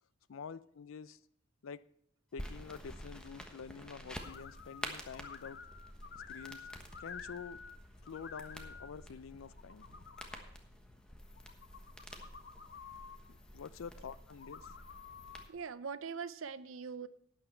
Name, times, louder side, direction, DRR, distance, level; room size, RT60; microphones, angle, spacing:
voice 1, 0.3-1.2 1.6-1.8 2.3-5.6 6.3-6.7 7.0-7.6 8.0-10.0 13.3-14.7, left 6 dB, 90° left, 0.5 m, -48 dB
sound 1, 2.4-15.5, equal, 5° left, 1.2 m, -50 dB
sound 2, 4.2-4.9 5.1-7.8 8.0-8.9 9.4-10.4 11.4-13.2 14.3-15.5, left 6 dB, 55° left, 0.8 m, -50 dB
voice 2, 15.5-17.1, right 6 dB, 85° right, 0.6 m, -42 dB
12.0 x 9.0 x 4.5 m
head